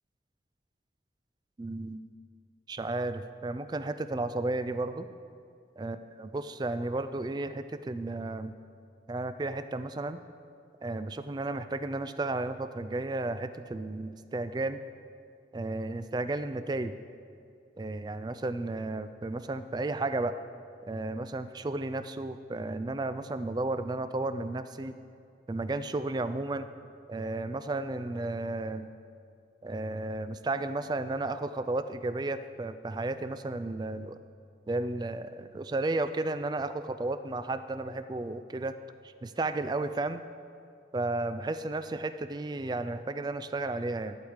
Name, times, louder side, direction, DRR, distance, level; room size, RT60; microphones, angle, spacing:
voice 1, 1.6-2.0 2.7-5.1 5.8-8.6 9.1-10.2 10.8-14.8 15.5-16.9 17.8-20.3 20.9-24.9 25.5-26.7 27.1-28.9 29.6-34.2 34.7-38.7 39.0-40.2 40.9-44.2, right 2 dB, 20° right, 11 dB, 0.3 m, -33 dB
11.5 x 5.0 x 8.0 m, 2.4 s
head